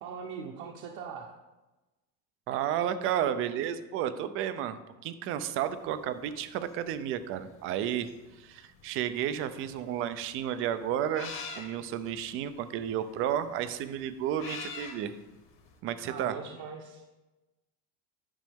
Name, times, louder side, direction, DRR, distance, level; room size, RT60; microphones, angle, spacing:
voice 1, 0.0-1.3 16.0-17.1, right 6 dB, 50° right, 0 dB, 0.9 m, -41 dB
voice 2, 2.5-4.8 5.0-8.1 8.4-15.1 15.8-16.3, right 10 dB, 35° right, 12 dB, 0.4 m, -32 dB
sound 1, 5.7-15.8, left 5 dB, 30° left, 1.1 m, -46 dB
10.5 x 6.2 x 3.5 m, 1.1 s
cardioid pair, 180°, 40 cm